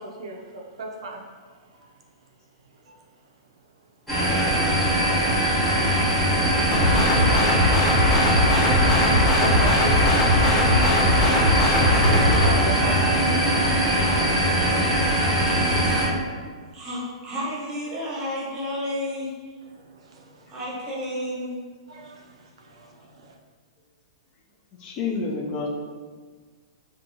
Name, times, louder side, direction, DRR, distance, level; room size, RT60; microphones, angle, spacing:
voice 1, 0.2-1.2 7.8-10.1 11.7-13.4 13.8-14.7 20.1-20.2 21.9-22.2 22.7-23.3, right 2 dB, 85° right, 0 dB, 0.4 m, -36 dB
sound 1, 4.1-16.1, right 1 dB, 5° left, 1.0 m, -21 dB
sound 2, 6.7-12.5, left 1 dB, 55° left, 0.8 m, -20 dB
voice 2, 16.7-19.3 20.5-21.6, equal, 25° right, -5 dB, 0.8 m, -31 dB
voice 3, 24.8-25.7, left 4 dB, 30° left, 0 dB, 0.3 m, -28 dB
2.7 x 2.3 x 2.6 m, 1.5 s
hypercardioid pair, 145°, 3 cm